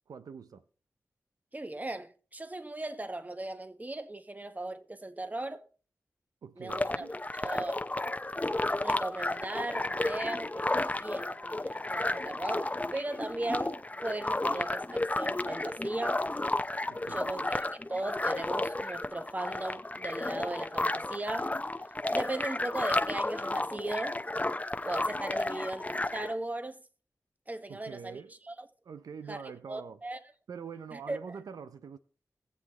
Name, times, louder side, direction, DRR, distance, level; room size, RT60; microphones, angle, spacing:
voice 1, 0.1-0.6 6.4-7.1 16.9-17.3 27.7-28.3 28.9-30.0 30.5-32.0, right 6 dB, 90° right, 0.5 m, -44 dB
voice 2, 1.5-5.7 6.6-7.1 7.4-7.8 8.8-16.2 17.1-21.5 22.1-24.2 24.8-26.8 27.5-28.2 28.5-28.7 29.3-29.4 29.7-30.2 30.9-31.3, right 2 dB, 25° right, 1.3 m, -37 dB
sound 1, 6.7-26.3, left 2 dB, 25° left, 0.9 m, -32 dB
19.0 x 7.5 x 3.0 m
cardioid pair, 45°, 6 cm